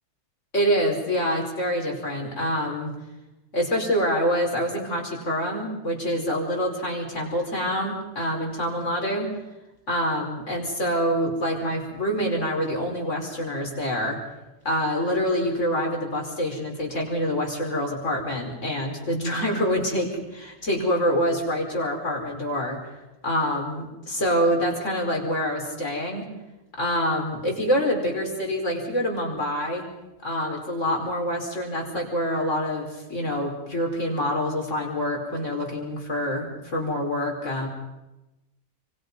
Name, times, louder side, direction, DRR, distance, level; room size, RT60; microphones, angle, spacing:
voice 1, 0.5-2.9 3.5-9.3 9.9-14.2 14.7-22.8 23.2-26.3 26.8-29.8 30.2-37.7, equal, 50° left, 1 dB, 5.5 m, -26 dB
28.5 x 24.5 x 5.5 m, 1.0 s
omnidirectional pair, 1.6 m